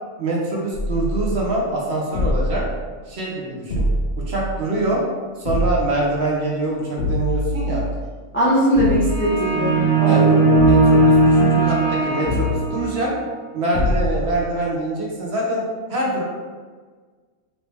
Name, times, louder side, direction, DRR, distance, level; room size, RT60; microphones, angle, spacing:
voice 1, 0.2-2.6 3.1-3.8 4.2-5.0 5.4-7.8 10.0-10.2 10.6-13.1 13.5-15.6 15.9-16.2, right 2 dB, 60° right, -3 dB, 0.9 m, -24 dB
sound 1, 0.7-1.5 2.1-2.8 3.7-4.7 5.5-6.1 7.0-8.1 8.8-9.4 10.6-11.7 12.3-12.9 13.7-14.4, left 1 dB, 55° left, 0.8 m, -24 dB
voice 2, 8.3-10.4, equal, 20° left, -7 dB, 0.3 m, -20 dB
sound 2, 9.0-13.0, right 2 dB, 30° right, 0.8 m, -17 dB
3.1 x 2.7 x 3.2 m, 1.5 s
omnidirectional pair, 1.3 m